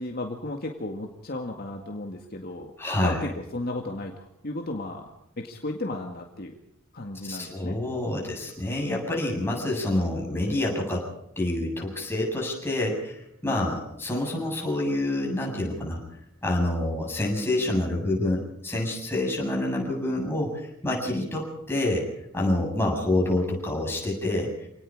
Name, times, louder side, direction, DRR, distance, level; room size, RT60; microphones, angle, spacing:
voice 1, 0.0-2.7 3.0-5.1 5.4-6.6 6.9-7.8, left 2 dB, 50° left, 2 dB, 2.1 m, -34 dB
voice 2, 2.8-3.2 7.2-11.1 11.4-16.0 16.4-22.1 22.3-24.5, left 1 dB, 10° left, -1 dB, 7.7 m, -27 dB
28.0 x 19.0 x 5.0 m, 0.81 s
head